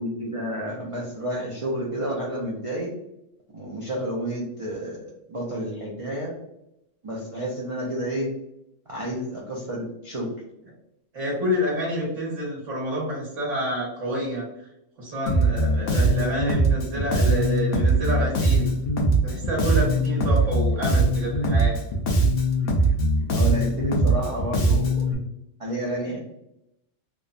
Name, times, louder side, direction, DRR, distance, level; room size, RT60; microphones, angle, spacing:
voice 1, 0.0-2.9 3.5-6.3 7.0-8.3 8.9-10.3 23.3-25.1 25.6-26.2, equal, 55° right, -4 dB, 0.3 m, -30 dB
voice 2, 11.1-14.5 15.0-18.7 19.2-21.8, equal, 85° right, -5 dB, 1.3 m, -28 dB
Bass guitar, 15.3-25.1, right 2 dB, 60° left, 0.7 m, -21 dB
3.1 x 2.0 x 2.4 m, 0.85 s
omnidirectional pair, 1.3 m